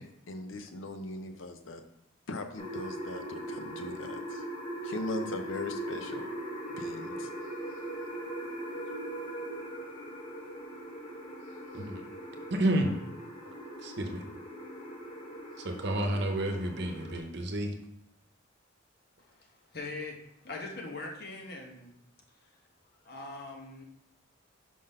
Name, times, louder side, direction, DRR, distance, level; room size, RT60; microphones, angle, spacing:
voice 1, 0.0-1.8 2.3-4.4 4.8-6.3 6.8-7.3, left 2 dB, 80° left, 7 dB, 0.7 m, -39 dB
sound 1, 2.6-17.2, right 1 dB, 25° left, 0.9 m, -40 dB
voice 2, 12.5-12.9 13.8-14.2 15.6-17.7, right 1 dB, 60° right, 5 dB, 0.8 m, -30 dB
voice 3, 19.7-20.1 20.4-21.9 23.1-23.8, left 3 dB, 55° left, 1 dB, 1.1 m, -40 dB
5.1 x 3.9 x 5.4 m, 0.75 s
head